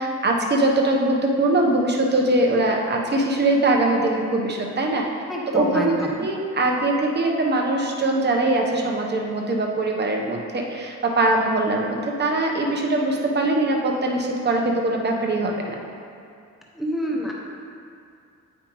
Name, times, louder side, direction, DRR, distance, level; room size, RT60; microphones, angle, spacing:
voice 1, 0.0-5.1 5.5-15.8, right 2 dB, 35° right, 0 dB, 0.9 m, -22 dB
voice 2, 5.3-6.2 16.8-17.3, equal, ahead, -2 dB, 0.9 m, -27 dB
8.3 x 5.4 x 3.1 m, 2.4 s
cardioid pair, 90°, 30 cm